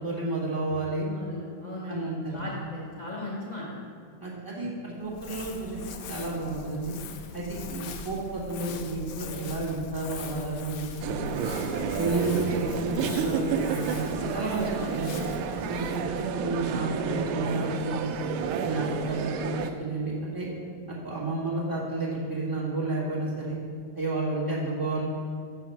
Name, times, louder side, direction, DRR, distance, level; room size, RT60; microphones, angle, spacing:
voice 1, 0.0-1.1 1.9-2.5 4.2-6.9 7.3-11.3 11.9-15.2 15.7-18.1 18.6-20.5 21.0-23.6 23.9-25.1, right 2 dB, 10° right, -8 dB, 1.7 m, -31 dB
voice 2, 1.0-3.8, left 1 dB, 50° left, -5 dB, 0.5 m, -37 dB
Crumpling crinkling, 5.0-17.5, left 5 dB, 85° left, 1.5 m, -42 dB
sound 1, 11.0-19.7, right 6 dB, 85° right, 1.4 m, -31 dB
6.4 x 5.8 x 5.9 m, 2.2 s
omnidirectional pair, 2.3 m